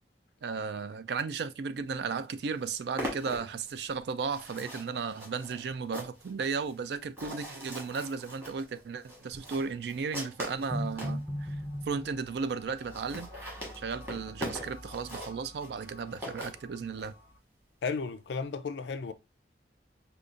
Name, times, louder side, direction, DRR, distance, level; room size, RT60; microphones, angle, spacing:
voice 1, 0.4-11.5 11.9-13.3 13.8-17.1, right 5 dB, 65° right, 0.3 m, -35 dB
sound 1, 2.0-2.1 2.3-11.2 11.8-11.9 12.1-12.2 12.4-12.5 12.7-17.1, equal, 15° right, 1.3 m, -42 dB
sound 2, 4.4-4.5 9.3-9.8 10.5-12.2, equal, ahead, 0.5 m, -36 dB
sound 3, 9.1-17.4, left 1 dB, 40° right, 1.9 m, -52 dB
voice 2, 17.8-19.1, left 5 dB, 75° left, 0.4 m, -34 dB
5.1 x 2.3 x 2.5 m
head